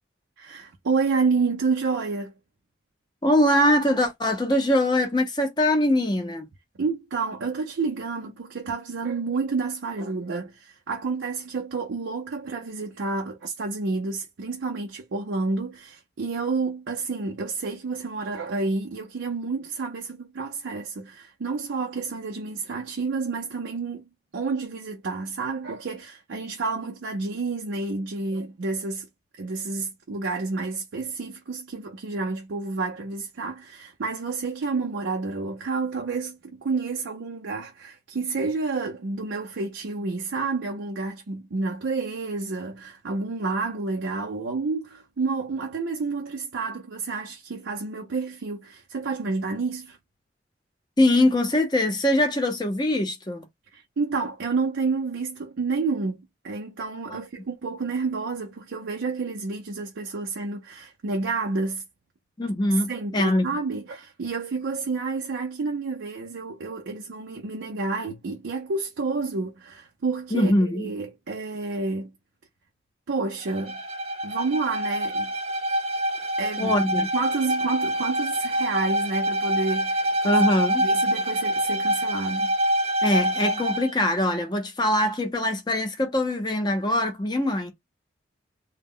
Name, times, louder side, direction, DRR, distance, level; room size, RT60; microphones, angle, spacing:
voice 1, 0.4-2.3 6.8-29.1 29.4-50.0 53.7-61.8 62.9-72.1 73.1-73.8 74.2-75.3 76.4-76.7 77.1-80.4 80.8-82.5, right 4 dB, 85° right, 0.5 m, -29 dB
voice 2, 3.2-6.5 51.0-53.4 57.1-57.2 62.4-63.5 70.3-70.9 76.6-77.1 80.2-80.9 83.0-87.7, left 1 dB, 25° left, 0.5 m, -22 dB
Bowed string instrument, 73.4-83.9, right 1 dB, 35° right, 0.5 m, -26 dB
2.1 x 2.0 x 3.6 m
head